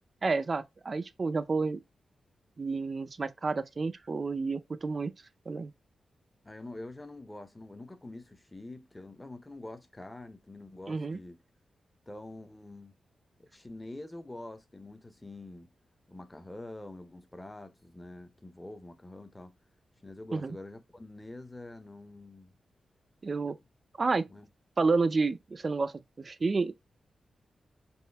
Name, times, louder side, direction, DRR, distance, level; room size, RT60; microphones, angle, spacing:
voice 1, 0.2-1.8 2.6-5.1 5.5-5.7 10.9-11.2 20.3-20.6 23.2-23.6 24.0-24.3 24.8-26.7, right 4 dB, 35° right, 0.4 m, -30 dB
voice 2, 6.4-11.4 12.1-12.9 13.4-15.7 16.1-19.6 20.0-22.5 24.3-24.5, left 2 dB, 15° left, 0.7 m, -46 dB
5.5 x 2.5 x 3.3 m
wide cardioid pair, 150°, 0 cm